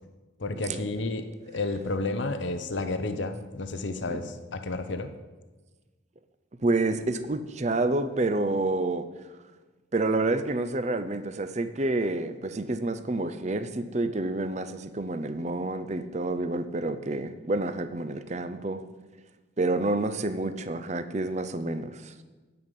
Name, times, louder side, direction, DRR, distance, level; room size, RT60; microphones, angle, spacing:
voice 1, 0.4-5.1, left 2 dB, 65° left, 9 dB, 0.8 m, -31 dB
voice 2, 6.6-9.1 9.9-18.8 19.6-22.1, right 2 dB, 35° right, 11 dB, 0.6 m, -28 dB
9.9 x 9.4 x 5.4 m, 1.3 s
head